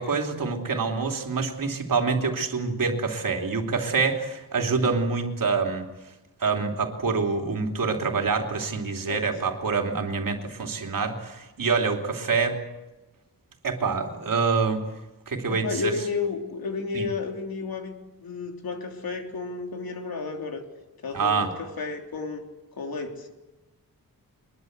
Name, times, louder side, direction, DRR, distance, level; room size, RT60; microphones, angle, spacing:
voice 1, 0.0-5.9 6.4-12.6 13.6-14.8 15.3-15.9 16.9-17.1 21.1-21.5, right 4 dB, 65° right, 3 dB, 3.3 m, -26 dB
voice 2, 15.5-17.9 18.2-20.6 21.0-22.4 22.8-23.3, left 4 dB, 80° left, 3 dB, 3.5 m, -32 dB
23.0 x 21.5 x 8.2 m, 1.1 s
wide cardioid pair, 140°, 35 cm